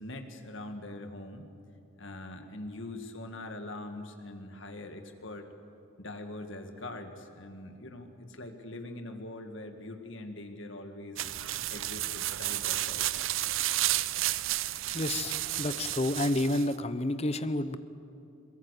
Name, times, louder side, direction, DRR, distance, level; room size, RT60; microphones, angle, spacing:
voice 1, 0.0-1.5 2.0-5.5 6.0-11.2 11.7-13.1, left 2 dB, 60° left, 6 dB, 2.0 m, -42 dB
sound 1, 11.2-16.7, right 15 dB, 70° right, 0.5 m, -32 dB
voice 2, 14.9-17.8, left 1 dB, 30° left, 13 dB, 0.8 m, -30 dB
22.0 x 21.5 x 8.3 m, 2.6 s
head